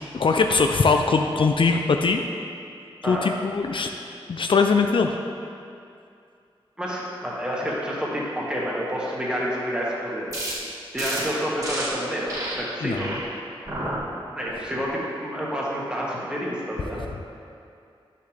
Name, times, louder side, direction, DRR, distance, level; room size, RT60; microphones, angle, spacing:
voice 1, 0.1-2.2 3.0-3.9 4.3-5.2 12.8-13.1, left 4 dB, 65° left, 4 dB, 0.4 m, -21 dB
voice 2, 6.8-10.3 10.9-13.1 14.3-17.0, equal, 10° right, -6 dB, 1.6 m, -29 dB
sound 1, 10.3-10.5 11.0-11.2 11.6-11.9 12.3-12.5 12.9-13.2 13.7-14.0 14.5-14.8, right 1 dB, 35° right, 2.0 m, -31 dB
9.6 x 6.7 x 3.4 m, 2.5 s
wide cardioid pair, 115°, 10 cm